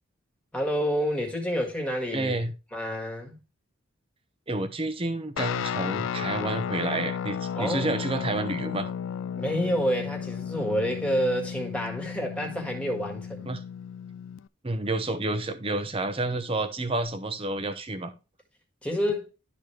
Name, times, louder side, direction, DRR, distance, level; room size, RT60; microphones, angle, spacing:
voice 1, 0.5-2.4 2.7-3.4 7.6-8.0 9.3-13.5 18.8-19.3, equal, 5° left, 1.7 m, -28 dB
voice 2, 2.1-2.5 4.5-8.9 13.5-13.6 14.6-18.1, right 2 dB, 25° right, 0.8 m, -29 dB
Guitar, 5.4-14.5, left 8 dB, 65° left, 0.3 m, -34 dB
12.0 x 4.1 x 3.3 m
head